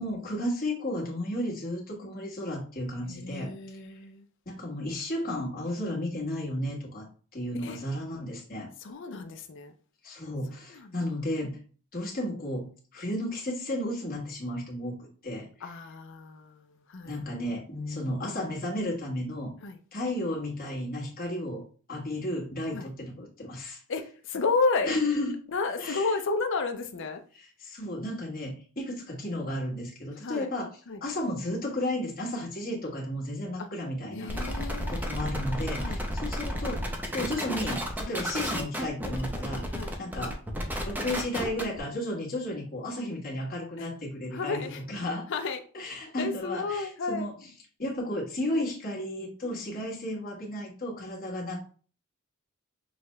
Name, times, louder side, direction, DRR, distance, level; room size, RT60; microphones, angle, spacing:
voice 1, 0.0-3.5 4.4-8.7 10.0-11.6 11.9-15.7 17.0-19.5 19.9-21.6 21.9-23.8 24.8-25.4 25.8-26.1 27.3-30.7 31.0-34.3 34.9-36.8 37.1-39.7 40.0-40.4 40.8-45.3 45.7-47.5 47.8-51.6, left 1 dB, 45° left, 1.4 m, -33 dB
voice 2, 3.0-4.2 7.6-7.8 8.8-9.7 10.7-11.0 15.6-17.2 19.6-19.8 22.7-22.9 23.9-24.9 25.5-27.2 30.2-30.5 30.9-31.0 33.6-33.7 34.1-35.1 35.8-36.0 38.1-38.2 39.7-40.0 43.8-43.9 44.3-44.8 45.3-45.6 46.2-47.3 49.4-49.6, left 4 dB, 60° left, 0.5 m, -32 dB
sound 1, 34.3-41.8, equal, 10° right, 0.6 m, -32 dB
6.1 x 2.3 x 3.1 m
head